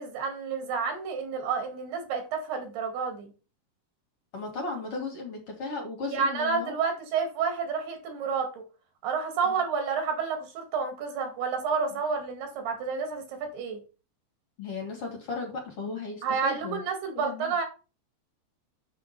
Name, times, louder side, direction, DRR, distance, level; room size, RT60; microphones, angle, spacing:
voice 1, 0.0-3.3 6.0-8.7 9.0-13.8 16.2-17.6, right 5 dB, 75° right, 4.1 m, -30 dB
voice 2, 4.3-6.7 9.4-9.5 14.6-16.8 17.1-17.5, left 4 dB, 40° left, 3.2 m, -36 dB
7.9 x 7.6 x 4.2 m
omnidirectional pair, 4.7 m